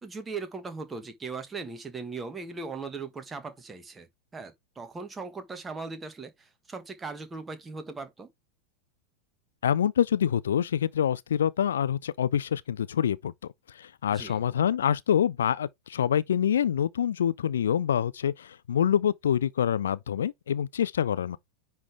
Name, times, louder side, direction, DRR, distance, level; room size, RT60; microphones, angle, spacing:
voice 1, 0.0-4.1 4.3-8.3 14.1-14.4, right 4 dB, 15° right, 1.3 m, -39 dB
voice 2, 9.6-13.3 13.7-21.4, left 9 dB, 65° left, 0.4 m, -26 dB
9.7 x 3.4 x 3.4 m
figure-of-eight pair, 90°, 0 cm